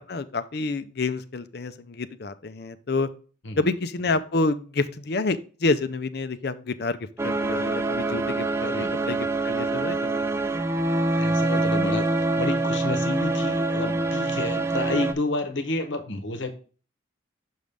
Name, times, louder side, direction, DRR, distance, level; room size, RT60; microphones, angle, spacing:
voice 1, 0.0-3.1 3.6-10.3, left 3 dB, 55° left, 0.6 m, -28 dB
sound 1, 7.2-15.1, right 2 dB, 15° right, 0.4 m, -25 dB
voice 2, 8.6-9.0 11.2-16.5, left 2 dB, 75° left, 1.0 m, -30 dB
6.3 x 5.5 x 3.4 m
head